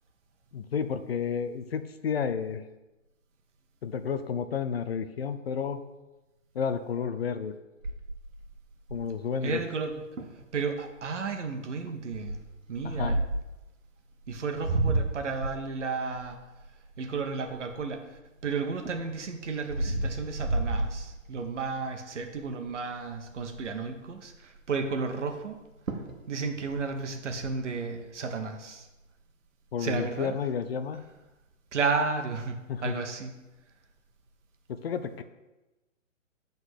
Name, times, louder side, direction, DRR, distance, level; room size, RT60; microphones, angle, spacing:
voice 1, 0.5-2.6 3.8-5.8 6.5-7.5 8.9-9.6 12.8-13.2 29.7-31.0 32.7-33.0 34.7-35.2, left 7 dB, 50° left, 10 dB, 0.6 m, -31 dB
sound 1, 7.8-9.3 9.8-9.9 10.2-10.4 11.0-11.3 12.1-13.6 14.2-18.1 18.6-21.7 22.1-22.4 22.7-22.8 23.0-23.8 25.5-25.6 25.9-26.2 26.5-27.5, right 2 dB, 80° right, 1.4 m, -32 dB
voice 2, 9.4-10.0 10.5-12.4 12.7-13.1 14.3-16.4 17.0-25.6 26.3-28.9 29.8-30.4 31.7-32.5 32.8-33.3, right 4 dB, 60° right, 5 dB, 1.3 m, -33 dB
7.8 x 4.0 x 6.3 m, 1.0 s
hypercardioid pair, 145°, 40 cm